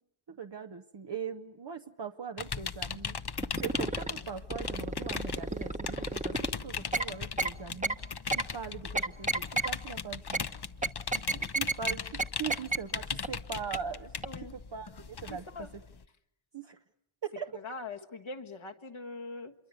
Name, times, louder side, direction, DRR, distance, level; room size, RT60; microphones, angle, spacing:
voice 1, 0.3-3.2 3.6-6.4 6.6-8.0 8.5-10.5 11.1-14.1 14.5-15.7 16.5-16.8 17.2-17.6, right 7 dB, 60° right, 5 dB, 1.0 m, -41 dB
sound 1, 2.4-16.0, left 6 dB, 55° left, 0.9 m, -39 dB
sound 2, 3.4-4.1 4.5-6.5 6.9-7.1 7.4-7.5 7.8-8.0 8.3-8.4 8.9-9.7 10.3-10.4 10.8-11.9 12.2-12.3 12.5-12.8 13.2-13.3 13.7-13.8 14.2-14.3, right 2 dB, 15° right, 1.1 m, -30 dB
voice 2, 14.2-14.6 15.3-15.7 17.5-19.5, left 3 dB, 75° left, 3 dB, 1.7 m, -42 dB
26.0 x 23.5 x 8.1 m, 0.81 s
cardioid pair, 40°, 48 cm